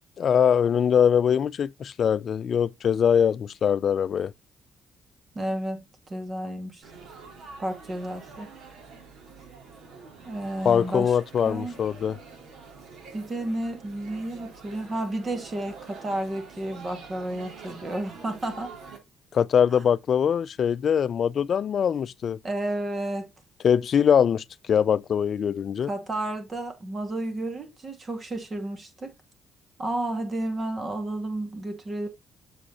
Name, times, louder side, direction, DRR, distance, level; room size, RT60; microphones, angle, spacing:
voice 1, 0.2-4.3 10.6-12.2 19.3-22.4 23.6-25.9, left 8 dB, 55° left, 0.4 m, -22 dB
voice 2, 5.3-6.8 7.6-8.5 10.2-11.2 11.4-11.8 13.1-18.7 19.7-19.8 22.4-23.3 25.9-29.1 29.8-32.1, right 1 dB, 35° right, 2.5 m, -32 dB
Laughter / Chatter / Crowd, 6.8-19.0, right 4 dB, 65° right, 3.7 m, -46 dB
7.3 x 5.1 x 4.2 m
cardioid pair, 90°, 0 cm